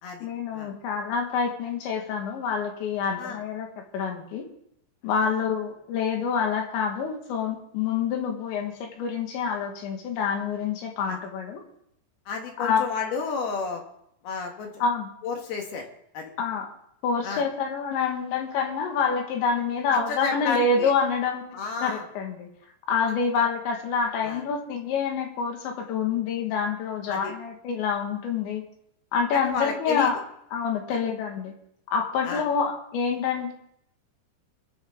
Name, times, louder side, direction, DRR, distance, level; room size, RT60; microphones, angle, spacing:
voice 1, 0.2-3.7 3.9-4.5 5.0-11.6 12.6-12.9 14.8-15.1 16.4-16.7 17.0-22.5 22.9-28.6 29.1-30.2 30.5-31.5 31.9-33.5, left 5 dB, 80° left, 3 dB, 4.1 m, -27 dB
voice 2, 3.0-3.4 5.2-5.4 11.1-11.2 12.3-13.8 14.2-14.7 15.2-15.8 16.1-16.3 17.2-17.4 19.9-20.9 21.5-22.0 24.2-24.4 27.1-27.3 29.3-30.1 32.2-32.5, left 5 dB, 65° left, 2 dB, 3.5 m, -31 dB
23.5 x 10.0 x 3.7 m, 0.74 s
omnidirectional pair, 5.1 m